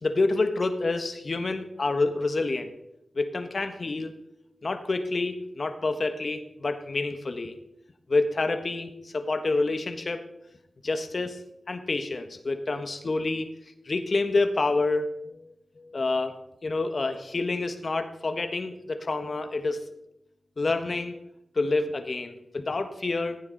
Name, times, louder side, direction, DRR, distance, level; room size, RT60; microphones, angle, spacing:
voice 1, 0.0-2.7 3.1-4.1 4.6-7.5 8.1-10.2 10.8-11.4 11.7-13.5 13.8-16.3 16.6-19.8 20.6-21.1 21.5-23.4, left 3 dB, 55° left, 7 dB, 1.4 m, -28 dB
15.0 x 9.4 x 4.1 m, 0.83 s
cardioid pair, 55°, 0 cm